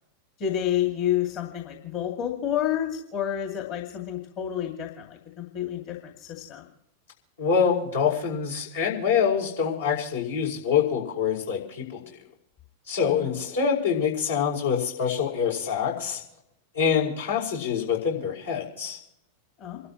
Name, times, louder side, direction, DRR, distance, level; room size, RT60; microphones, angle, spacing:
voice 1, 0.4-6.6 13.1-13.3 19.6-19.8, left 10 dB, 40° left, 2 dB, 2.4 m, -29 dB
voice 2, 7.4-12.0 12.9-16.2 16.7-19.0, left 7 dB, 70° left, -3 dB, 5.4 m, -25 dB
29.0 x 12.5 x 3.1 m, 0.81 s
figure-of-eight pair, 90°, 0 cm